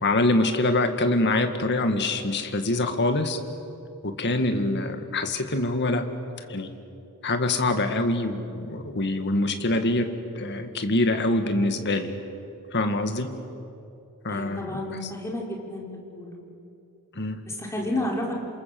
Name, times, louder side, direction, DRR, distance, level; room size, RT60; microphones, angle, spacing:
voice 1, 0.0-3.4 4.0-6.0 6.5-6.7 7.2-10.1 10.4-12.1 12.7-13.3 14.2-15.1 17.2-17.4, left 2 dB, 50° left, 7 dB, 2.0 m, -25 dB
voice 2, 14.3-15.8 16.1-16.4 17.5-18.4, left 1 dB, 15° left, -1 dB, 4.5 m, -31 dB
27.5 x 27.0 x 7.8 m, 2.8 s
head